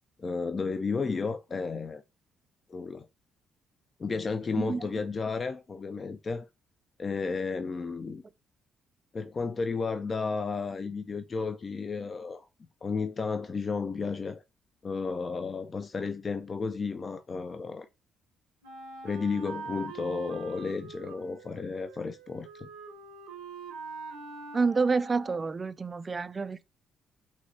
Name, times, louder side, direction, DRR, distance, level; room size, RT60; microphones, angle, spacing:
voice 1, 0.2-2.0 2.7-3.1 4.0-6.5 7.0-8.2 9.1-12.5 12.8-14.4 14.8-17.9 19.0-22.7, left 4 dB, 40° left, 0.4 m, -33 dB
Wind instrument woodwind instrument, 18.6-25.6, right 4 dB, 85° right, 0.9 m, -44 dB
voice 2, 24.5-26.6, right 4 dB, 35° right, 0.3 m, -28 dB
6.0 x 2.8 x 2.7 m
hypercardioid pair, 50°, 0 cm